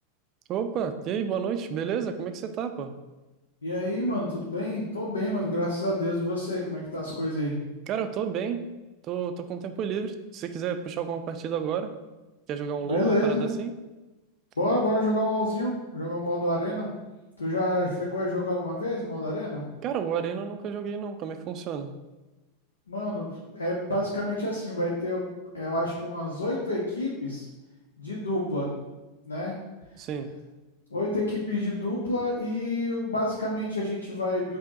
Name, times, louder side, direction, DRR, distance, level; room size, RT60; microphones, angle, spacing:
voice 1, 0.5-2.9 7.9-8.6 9.1-11.9 12.5-13.7 19.8-21.9 30.0-30.3, right 7 dB, 40° right, 8 dB, 0.3 m, -31 dB
voice 2, 3.6-7.6 12.9-13.5 14.6-16.9 17.4-19.6 22.9-27.5 28.0-28.7 29.2-29.6 30.9-34.6, left 1 dB, 85° left, -3 dB, 0.5 m, -28 dB
4.9 x 2.0 x 2.8 m, 1.1 s
figure-of-eight pair, 90°, 0 cm